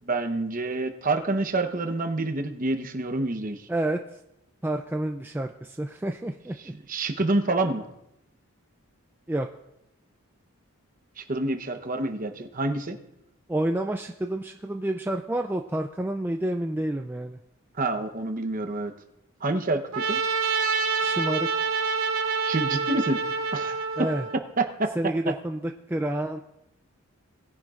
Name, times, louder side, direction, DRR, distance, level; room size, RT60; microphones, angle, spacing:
voice 1, 0.0-3.7 6.9-7.9 11.2-13.0 17.8-18.9 19.4-20.2 22.4-23.2 23.5-23.8 24.6-24.9, right 2 dB, 40° right, 7 dB, 0.9 m, -27 dB
voice 2, 3.7-4.2 4.6-6.7 9.3-9.5 13.5-17.4 21.0-21.5 24.0-24.3 25.0-26.4, right 1 dB, 10° right, 4 dB, 0.3 m, -29 dB
Trumpet, 19.9-24.4, right 4 dB, 75° right, 1.1 m, -27 dB
19.5 x 10.5 x 2.5 m, 0.86 s
head